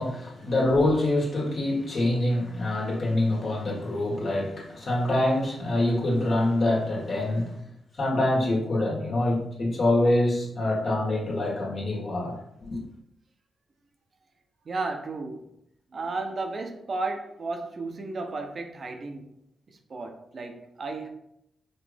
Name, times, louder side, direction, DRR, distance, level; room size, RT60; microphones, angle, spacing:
voice 1, 0.0-7.6 8.0-12.8, left 1 dB, 60° left, 1.6 m, -25 dB
voice 2, 14.7-15.5 15.9-19.3 19.7-21.1, right 3 dB, 55° right, 0.6 m, -33 dB
5.1 x 2.6 x 3.4 m
hypercardioid pair, 40°, 0 cm